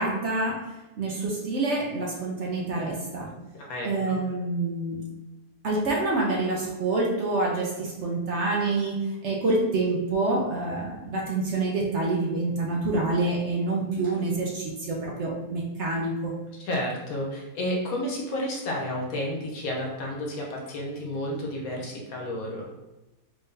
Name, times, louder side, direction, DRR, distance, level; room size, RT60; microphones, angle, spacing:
voice 1, 0.0-3.3 3.8-5.0 5.6-16.4, right 2 dB, 60° right, -2 dB, 0.7 m, -27 dB
voice 2, 3.5-4.2 16.5-22.7, left 1 dB, 65° left, -1 dB, 1.3 m, -31 dB
3.4 x 2.7 x 3.7 m, 1.0 s
omnidirectional pair, 1.7 m